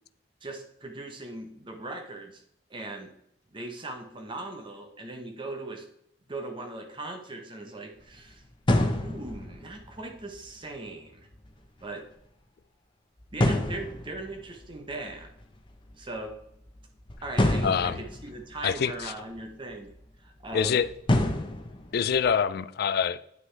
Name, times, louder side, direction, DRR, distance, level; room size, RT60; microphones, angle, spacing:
voice 1, 0.4-2.4 2.7-3.1 3.5-5.9 6.3-8.4 9.0-11.3 11.8-12.1 13.3-15.3 15.9-16.3 17.2-19.9 20.2-20.8, right 2 dB, 25° right, 0.8 m, -39 dB
sound 1, 8.0-8.3 8.7-10.8 11.1-11.5 11.8-11.9 12.1-12.2 13.2-16.3 16.6-19.4 19.7-20.0 20.5-22.3, left 1 dB, 25° left, 0.8 m, -29 dB
voice 2, 17.6-18.0 18.6-19.1 20.5-20.9 21.9-23.2, left 7 dB, 55° left, 0.3 m, -25 dB
9.3 x 6.1 x 3.3 m
head